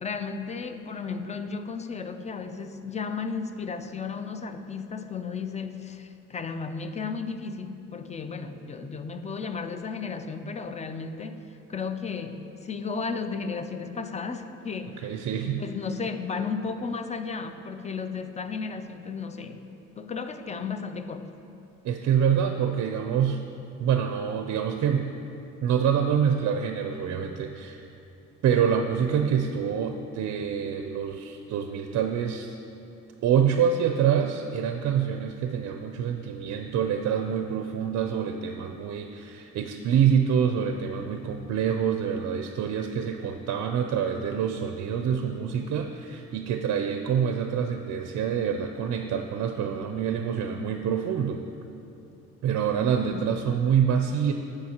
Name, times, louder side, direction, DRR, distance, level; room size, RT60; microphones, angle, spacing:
voice 1, 0.0-15.1 15.4-19.6 20.0-21.3 53.1-53.3, left 5 dB, 25° left, 9 dB, 0.4 m, -34 dB
voice 2, 15.0-15.6 21.8-23.5 23.8-25.1 25.6-27.8 28.4-32.5 33.2-51.4 52.4-54.3, right 8 dB, 60° right, 6 dB, 0.4 m, -26 dB
12.0 x 4.8 x 2.9 m, 2.7 s
cardioid pair, 90°, 30 cm